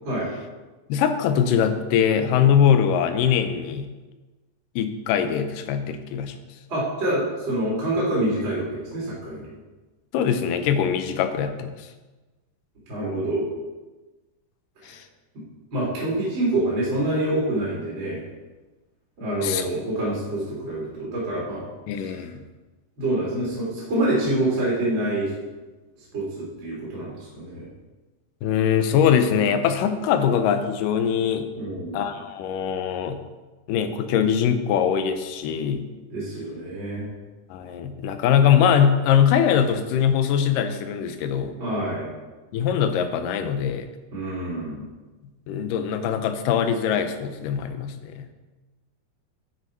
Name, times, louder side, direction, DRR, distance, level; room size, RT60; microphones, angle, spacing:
voice 1, 0.9-3.9 4.8-6.3 10.1-11.7 14.8-15.0 19.4-19.7 21.9-22.4 28.4-31.5 31.9-33.2 33.7-35.8 37.5-41.6 42.5-43.9 45.5-48.3, left 8 dB, 80° left, 9 dB, 2.2 m, -22 dB
voice 2, 6.7-9.4 12.9-13.5 14.9-15.0 15.7-18.2 19.2-21.7 21.9-22.2 23.0-25.3 26.1-27.7 31.5-32.1 36.1-37.1 41.6-42.1 44.1-44.9, right 1 dB, 35° right, -7 dB, 3.3 m, -26 dB
10.5 x 6.5 x 4.5 m, 1.2 s
omnidirectional pair, 4.0 m